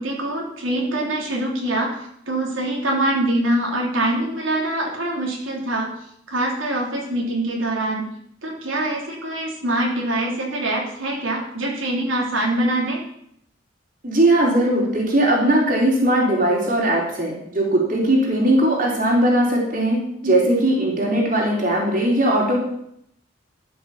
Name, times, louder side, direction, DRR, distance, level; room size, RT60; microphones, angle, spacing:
voice 1, 0.0-8.1 8.4-13.0 20.2-20.3, right 1 dB, 90° right, -1 dB, 3.3 m, -24 dB
voice 2, 14.0-22.6, right 1 dB, 45° right, -2 dB, 3.6 m, -19 dB
12.5 x 7.0 x 7.1 m, 0.71 s
head